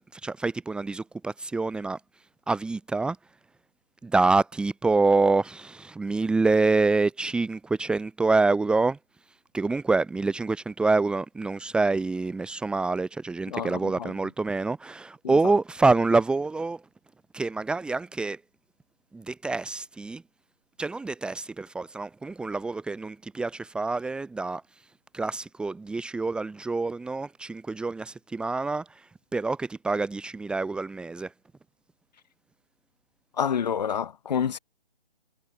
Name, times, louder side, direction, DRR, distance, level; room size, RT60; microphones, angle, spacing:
voice 1, 0.0-2.0 2.5-3.2 4.0-9.0 9.5-16.8 17.3-18.4 19.1-20.2 20.8-24.6 25.1-31.3, right 3 dB, 5° right, 3.4 m, -26 dB
voice 2, 13.5-14.1 15.2-15.3 33.4-34.6, left 8 dB, 40° left, 6.8 m, -28 dB
figure-of-eight pair, 160°, 32 cm